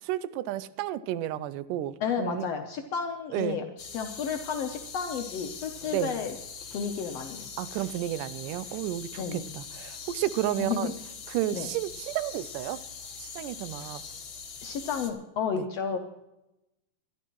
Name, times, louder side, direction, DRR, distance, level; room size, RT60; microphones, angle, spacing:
voice 1, 0.0-2.5 3.3-3.6 5.9-6.1 7.6-10.9 11.3-12.8 13.2-14.0 15.6-15.7, right 13 dB, 80° right, 2.2 m, -32 dB
voice 2, 2.0-6.3 6.7-7.5 9.2-9.5 10.5-10.9 11.5-11.7 14.6-16.0, left 6 dB, 70° left, 1.6 m, -32 dB
sound 1, 3.8-15.1, left 5 dB, 55° left, 1.6 m, -42 dB
23.0 x 12.0 x 3.1 m
omnidirectional pair, 3.8 m